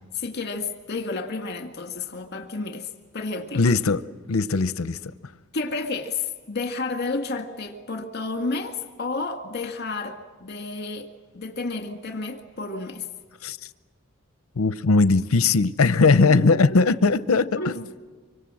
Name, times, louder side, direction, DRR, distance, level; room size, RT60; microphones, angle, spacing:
voice 1, 0.1-3.6 5.5-11.1 11.3-13.1 16.3-16.8 17.5-17.8, left 3 dB, 50° left, 6 dB, 1.9 m, -31 dB
voice 2, 3.5-4.0 4.3-5.0 13.4-13.6 14.6-17.7, left 3 dB, 80° left, 14 dB, 0.7 m, -19 dB
25.0 x 24.5 x 7.6 m, 1.4 s
head